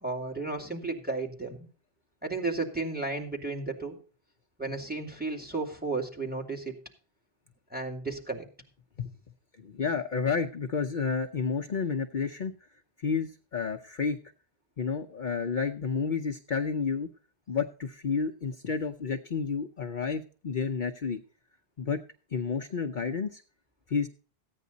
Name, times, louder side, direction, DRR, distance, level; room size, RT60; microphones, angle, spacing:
voice 1, 0.0-1.7 2.2-4.0 4.6-6.8 7.7-8.5, right 3 dB, 10° right, 2 dB, 2.7 m, -33 dB
voice 2, 9.6-12.5 13.0-14.2 14.8-17.1 17.5-21.2 21.8-22.0 22.3-23.4 23.9-24.1, left 5 dB, 55° left, 3 dB, 0.9 m, -30 dB
15.5 x 9.4 x 4.0 m, 0.40 s
omnidirectional pair, 1.1 m